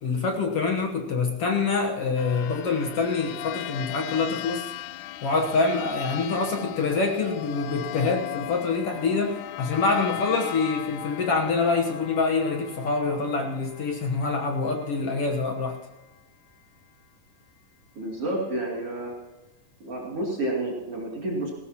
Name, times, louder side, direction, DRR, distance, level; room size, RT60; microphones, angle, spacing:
voice 1, 0.0-4.7 5.2-15.8, left 4 dB, 60° left, 2 dB, 1.7 m, -26 dB
sound 1, 2.2-15.4, left 13 dB, 80° left, 1.9 m, -38 dB
voice 2, 18.0-19.1 19.8-21.5, right 1 dB, 45° right, -4 dB, 3.6 m, -30 dB
20.0 x 17.5 x 2.9 m, 1.1 s
omnidirectional pair, 3.8 m